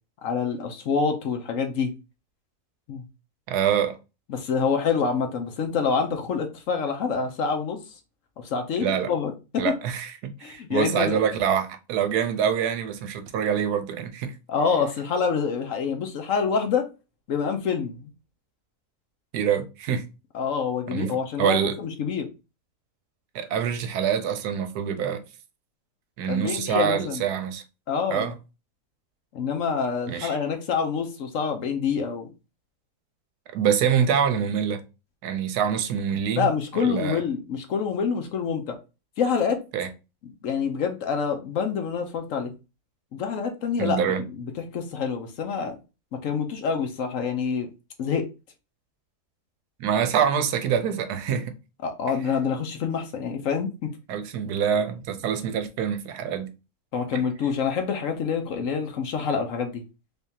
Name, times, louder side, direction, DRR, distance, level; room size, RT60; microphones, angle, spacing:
voice 1, 0.2-1.9 2.9-3.0 4.3-7.8 8.4-9.7 10.4-11.2 14.5-16.8 17.3-18.1 20.3-22.3 26.3-27.2 27.9-28.3 29.3-32.3 36.4-38.8 39.2-39.6 40.4-42.5 43.1-44.0 44.4-45.8 46.2-47.7 48.0-48.2 51.8-53.9 56.9-59.8, left 6 dB, 65° left, 1.0 m, -26 dB
voice 2, 3.5-3.9 8.8-9.1 9.6-14.3 19.3-20.0 20.9-21.1 21.4-21.8 23.3-25.2 26.2-27.6 28.1-28.3 30.1-30.4 33.5-34.8 35.2-36.5 36.7-37.2 39.7-39.9 43.8-44.2 49.8-51.5 54.1-56.5 57.1-57.2, right 8 dB, 80° right, 1.2 m, -25 dB
3.6 x 3.5 x 2.7 m
omnidirectional pair, 1.6 m